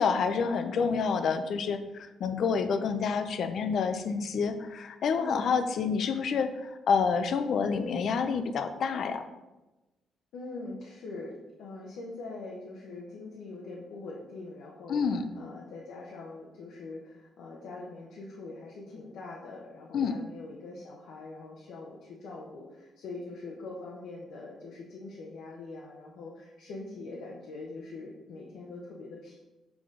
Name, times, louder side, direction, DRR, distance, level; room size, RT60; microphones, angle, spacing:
voice 1, 0.0-9.2 14.9-15.2 19.9-20.1, left 5 dB, 65° left, 8 dB, 0.6 m, -28 dB
voice 2, 10.3-29.4, left 3 dB, 80° left, -3 dB, 1.0 m, -43 dB
6.0 x 4.9 x 3.8 m, 1.0 s
cardioid pair, 90°, 0 cm